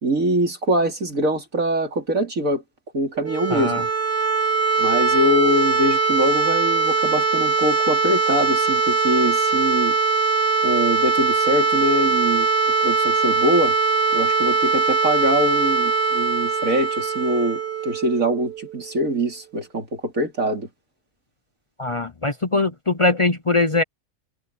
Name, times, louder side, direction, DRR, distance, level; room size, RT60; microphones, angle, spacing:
voice 1, 0.0-2.6 2.9-3.9 4.8-10.0 10.6-12.5 12.8-13.7 14.1-20.7, equal, 55° right, 3.6 m, -23 dB
sound 1, 3.1-18.9, right 4 dB, 40° right, 2.4 m, -21 dB
voice 2, 3.5-3.8 21.8-23.8, left 3 dB, 40° left, 0.4 m, -21 dB
omnidirectional pair, 1.7 m